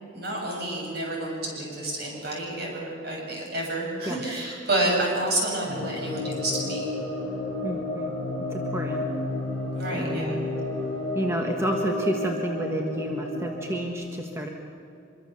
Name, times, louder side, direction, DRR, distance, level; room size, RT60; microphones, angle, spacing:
voice 1, 0.1-6.9 9.7-10.3, right 1 dB, 55° right, -1 dB, 7.4 m, -29 dB
sound 1, 5.6-13.9, left 2 dB, 5° left, 6.7 m, -31 dB
voice 2, 7.6-8.1 8.5-9.1 9.9-10.5 11.1-14.5, equal, 15° right, 2 dB, 1.5 m, -30 dB
24.5 x 23.0 x 7.1 m, 2.7 s
head